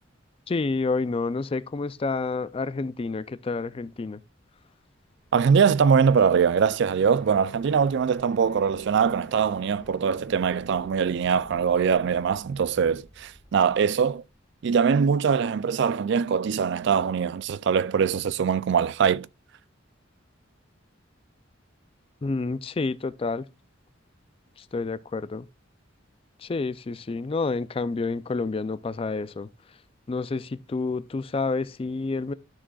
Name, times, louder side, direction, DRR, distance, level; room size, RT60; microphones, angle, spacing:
voice 1, 0.5-4.2 22.2-23.5 24.7-25.5 26.4-29.5 30.1-32.3, left 3 dB, 30° left, 0.4 m, -29 dB
sound 1, 4.8-14.8, left 1 dB, 10° left, 1.6 m, -51 dB
voice 2, 5.3-14.2 14.6-19.3, right 6 dB, 60° right, 0.4 m, -22 dB
12.0 x 6.2 x 2.3 m
head